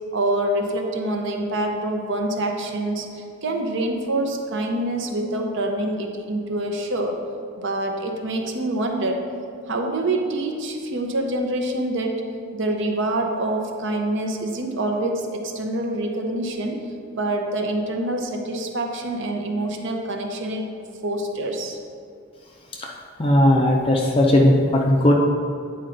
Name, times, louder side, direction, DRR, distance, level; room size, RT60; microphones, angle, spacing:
voice 1, 0.1-7.2 7.6-9.3 9.7-12.2 12.5-16.8 17.1-20.6 21.0-21.8, right 1 dB, 55° right, 3 dB, 0.7 m, -26 dB
voice 2, 23.2-25.1, left 1 dB, 25° left, -1 dB, 0.4 m, -17 dB
8.9 x 4.4 x 3.9 m, 2.3 s
head